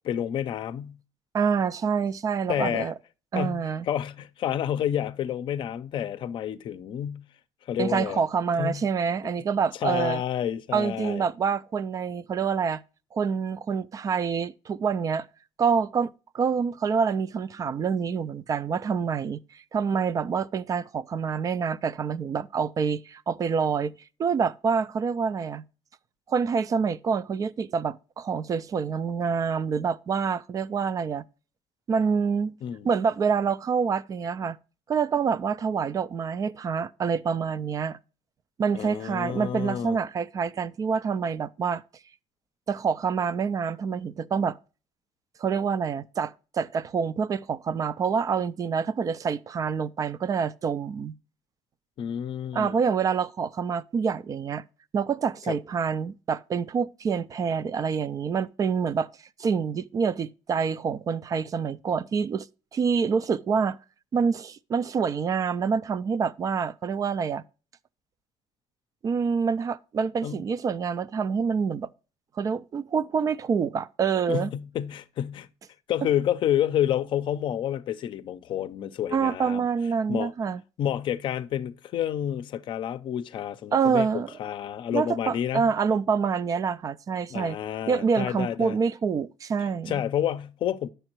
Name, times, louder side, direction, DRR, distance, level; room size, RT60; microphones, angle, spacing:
voice 1, 0.0-1.0 2.5-2.9 3.3-7.2 7.7-8.2 8.6-8.8 9.8-11.2 32.6-32.9 38.7-40.0 52.0-52.8 55.5-55.6 70.2-70.4 74.3-75.5 75.9-79.7 80.1-80.3 80.8-85.7 87.3-88.8 89.9-90.9, left 10 dB, 55° left, 0.5 m, -29 dB
voice 2, 1.3-2.9 3.3-3.9 7.8-10.2 10.7-12.8 13.1-15.3 15.6-23.9 24.2-25.6 26.3-31.2 31.9-32.5 32.8-34.6 34.9-38.0 38.6-41.8 42.7-44.6 45.4-51.1 52.5-54.6 54.9-59.1 59.4-62.5 62.7-63.8 64.1-67.4 69.0-71.9 72.4-74.5 79.1-80.6 83.7-84.3 84.9-87.6 87.9-90.0, right 6 dB, 35° right, 0.3 m, -26 dB
9.7 x 6.7 x 2.9 m
cardioid pair, 120°, 10 cm